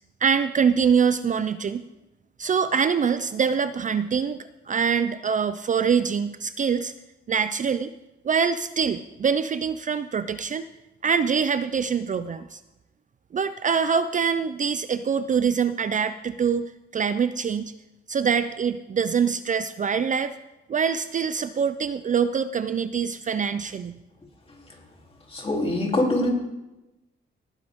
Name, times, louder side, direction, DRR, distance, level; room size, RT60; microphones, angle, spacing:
voice 1, 0.2-1.8 2.4-6.9 7.3-7.9 8.2-10.7 11.0-12.6 13.3-17.7 18.1-20.4 20.7-24.0, right 6 dB, 40° right, 12 dB, 0.5 m, -24 dB
voice 2, 25.3-26.3, left 1 dB, 30° left, 0 dB, 3.2 m, -23 dB
18.0 x 10.0 x 3.6 m, 1.0 s
cardioid pair, 105°, 21 cm